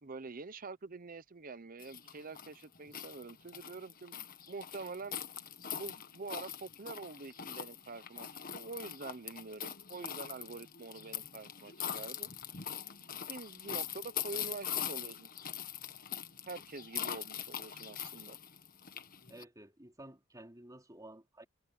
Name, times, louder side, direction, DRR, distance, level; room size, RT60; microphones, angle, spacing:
voice 1, 0.0-5.2 5.8-8.3 8.5-12.3 13.0-15.3 16.5-18.4, right 3 dB, 45° right, 0.8 m, -46 dB
sound 1, 1.8-19.4, left 9 dB, 45° left, 1.5 m, -42 dB
voice 2, 19.3-21.5, right 1 dB, 20° right, 4.2 m, -52 dB
head